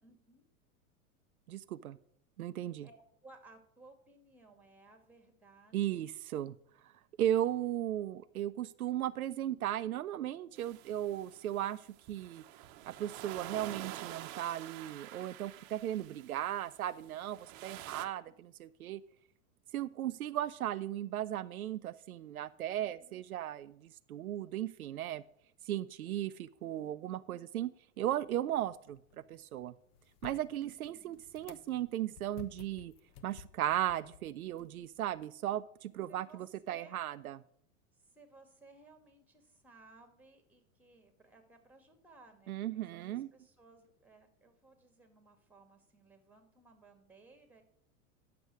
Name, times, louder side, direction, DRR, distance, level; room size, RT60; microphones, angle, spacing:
voice 1, 0.0-0.5 2.6-6.0 22.8-23.2 30.6-31.1 36.1-37.0 37.9-47.6, right 3 dB, 5° right, 7 dB, 2.3 m, -60 dB
voice 2, 1.5-2.0 2.4-2.9 5.7-6.5 7.2-11.8 12.1-12.4 12.9-19.0 19.7-25.2 25.7-29.0 29.3-29.7 30.2-32.9 33.2-37.4 42.5-43.3, right 12 dB, 85° right, 13 dB, 0.6 m, -36 dB
sound 1, 10.6-18.1, right 13 dB, 50° right, 0.9 m, -48 dB
sound 2, 28.3-35.3, left 9 dB, 55° left, 1.0 m, -56 dB
9.6 x 6.9 x 6.2 m, 0.69 s
hypercardioid pair, 95°, 42 cm